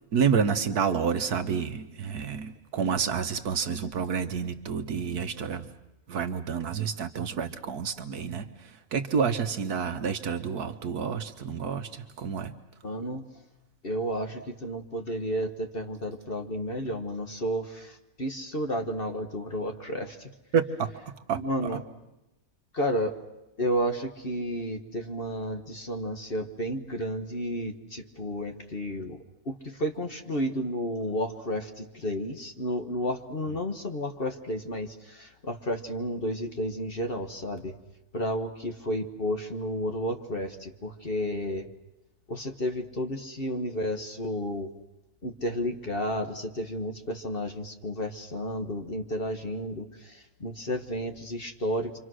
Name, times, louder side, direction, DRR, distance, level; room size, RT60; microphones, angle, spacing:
voice 1, 0.1-5.7 6.1-12.5 20.5-20.9 21.3-21.4, right 6 dB, 60° right, 8 dB, 1.5 m, -29 dB
voice 2, 12.8-13.4 13.8-20.3 21.3-21.8 22.7-23.2 23.6-29.2 29.4-37.8 38.1-41.7 42.3-44.7 45.2-52.0, equal, 35° left, 5 dB, 1.4 m, -32 dB
28.5 x 25.0 x 6.3 m, 0.93 s
omnidirectional pair, 1.9 m